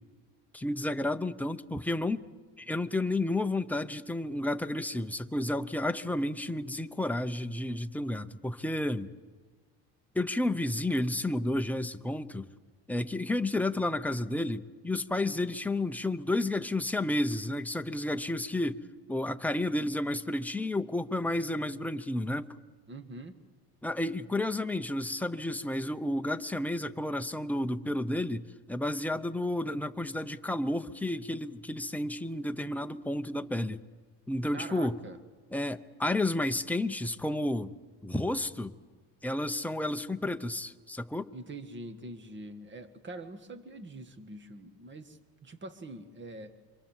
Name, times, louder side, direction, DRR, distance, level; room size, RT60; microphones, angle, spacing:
voice 1, 0.5-2.2 2.6-9.1 10.1-12.5 12.9-18.8 19.1-22.5 23.8-28.4 28.7-33.8 34.3-35.0 35.5-37.7 38.0-38.7 39.2-41.3, left 1 dB, 5° left, 8 dB, 0.8 m, -31 dB
voice 2, 22.9-23.3 34.5-35.2 41.3-46.5, right 2 dB, 25° right, 9 dB, 1.8 m, -44 dB
27.0 x 24.5 x 7.4 m, 1.4 s
cardioid pair, 120°, 44 cm